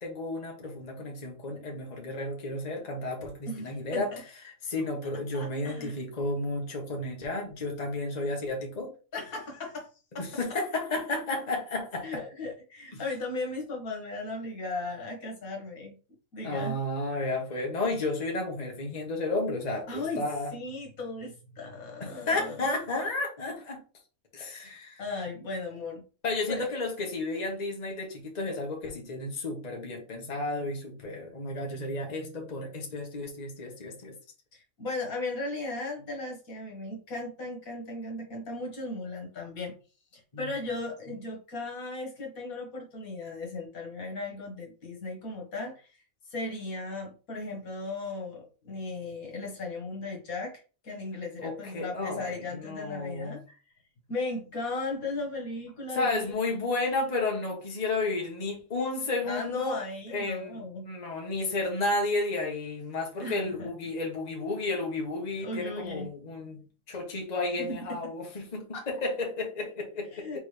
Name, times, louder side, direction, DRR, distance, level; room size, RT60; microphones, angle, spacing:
voice 1, 0.0-4.1 4.4-8.9 10.2-12.0 12.9-13.0 16.4-20.5 22.3-23.8 24.3-25.0 26.2-34.1 40.3-40.5 51.4-53.4 55.9-59.8 60.1-60.6 60.8-66.6 66.9-70.4, left 2 dB, 30° left, 1 dB, 1.2 m, -32 dB
voice 2, 3.5-4.2 5.3-6.0 9.1-9.9 10.1-10.3 12.0-16.0 16.3-16.8 19.9-22.6 25.0-26.0 26.5-26.7 34.5-39.7 40.1-45.9 46.3-53.6 54.1-56.3 59.2-60.9 63.2-63.7 65.4-66.1 67.7-68.0 68.7-68.9 70.1-70.4, left 2 dB, 75° left, 0 dB, 1.9 m, -36 dB
4.4 x 3.8 x 3.2 m, 0.34 s
omnidirectional pair, 1.5 m